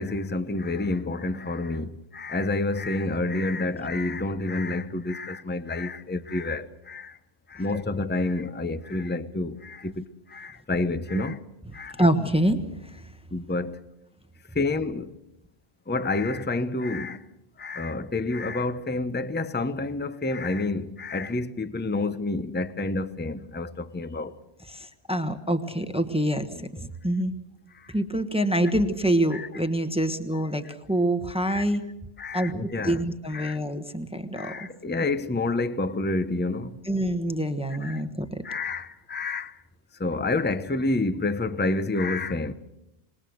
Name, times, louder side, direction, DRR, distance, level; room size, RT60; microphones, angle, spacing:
voice 1, 0.0-7.2 7.5-11.4 11.7-12.0 13.3-13.8 14.5-15.1 15.9-17.2 17.6-24.3 27.8-27.9 29.3-29.5 31.5-31.6 32.2-33.0 33.3-33.6 34.3-36.8 37.8-38.0 38.4-39.6 40.0-42.5, left 2 dB, 10° left, 0.7 m, -29 dB
voice 2, 12.0-13.1 24.7-27.3 27.9-31.8 32.3-34.7 36.8-38.4, right 1 dB, 5° right, 1.1 m, -26 dB
26.5 x 20.5 x 6.4 m
omnidirectional pair, 1.1 m